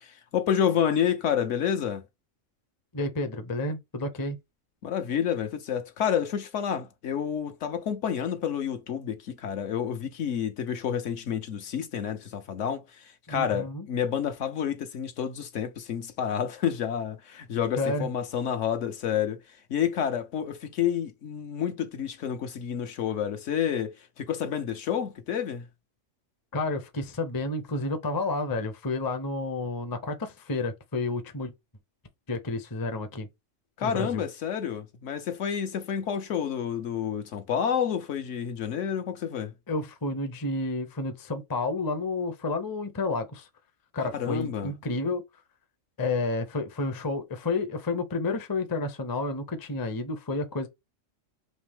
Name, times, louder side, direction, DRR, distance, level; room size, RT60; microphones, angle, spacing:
voice 1, 0.0-2.0 4.8-19.4 19.7-25.7 33.8-39.5 44.1-44.7, left 8 dB, 70° left, 1.1 m, -29 dB
voice 2, 2.9-4.4 13.3-13.9 17.8-18.1 26.5-31.5 32.3-33.3 33.8-34.2 39.7-43.5 43.9-45.2 46.0-50.7, left 2 dB, 25° left, 0.5 m, -30 dB
4.2 x 3.0 x 3.4 m
omnidirectional pair, 1.4 m